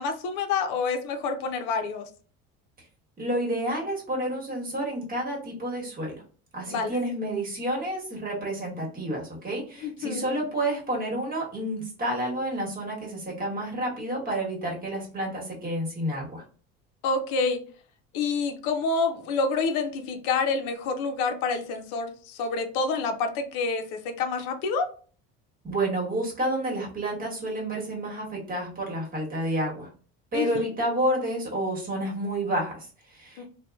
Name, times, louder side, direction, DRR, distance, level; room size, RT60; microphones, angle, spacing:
voice 1, 0.0-2.1 6.7-6.9 9.8-10.3 17.0-17.6 18.1-24.9 30.3-30.7 33.4-33.5, left 4 dB, 75° left, 6 dB, 0.6 m, -28 dB
voice 2, 3.2-6.2 6.5-16.4 25.6-29.9 30.3-33.4, right 1 dB, 25° right, -2 dB, 1.2 m, -30 dB
2.8 x 2.2 x 2.3 m, 0.41 s
supercardioid pair, 105°, 32 cm